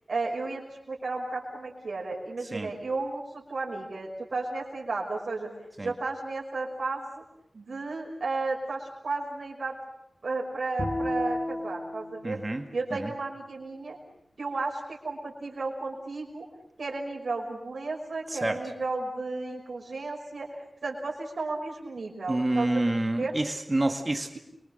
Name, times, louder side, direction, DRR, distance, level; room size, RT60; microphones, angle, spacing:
voice 1, 0.1-5.5 5.8-7.2 7.5-9.8 10.2-12.4 12.7-14.0 14.4-16.5 16.8-22.8 23.2-23.3, right 3 dB, 80° right, -1 dB, 5.8 m, -33 dB
Bowed string instrument, 10.8-14.1, left 1 dB, 50° left, 3.8 m, -35 dB
voice 2, 12.2-12.7 12.9-13.1 18.3-18.6 22.3-24.4, right 2 dB, 30° right, 5 dB, 2.0 m, -28 dB
29.5 x 24.5 x 6.7 m, 0.77 s
wide cardioid pair, 80°, 0 cm